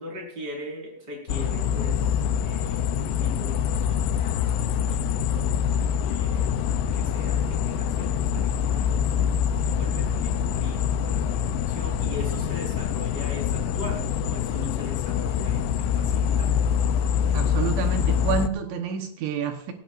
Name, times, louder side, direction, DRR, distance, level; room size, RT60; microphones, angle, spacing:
voice 1, 0.0-5.5 6.0-6.5 6.9-9.2 9.6-16.5, left 1 dB, 25° right, 0 dB, 5.1 m, -40 dB
sound 1, 1.3-18.5, left 8 dB, 80° left, 2.4 m, -25 dB
voice 2, 17.3-19.7, right 7 dB, 80° right, 4 dB, 3.5 m, -29 dB
18.5 x 17.0 x 2.6 m, 0.70 s
omnidirectional pair, 5.1 m